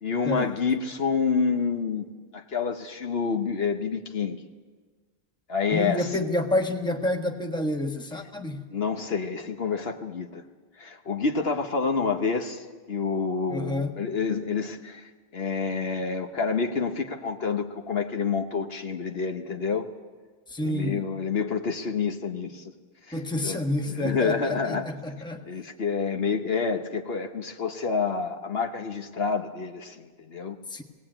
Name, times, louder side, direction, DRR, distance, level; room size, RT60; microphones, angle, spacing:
voice 1, 0.0-2.1 2.3-4.4 5.5-6.1 8.7-10.4 10.8-19.9 20.6-22.7 23.1-23.6 23.9-24.9 25.5-30.6, left 5 dB, 60° left, 4 dB, 1.3 m, -28 dB
voice 2, 5.7-8.6 13.5-14.0 20.5-21.0 23.1-25.4 30.7-30.8, left 1 dB, 5° left, 4 dB, 1.2 m, -28 dB
19.0 x 18.0 x 8.9 m, 1.4 s
omnidirectional pair, 1.2 m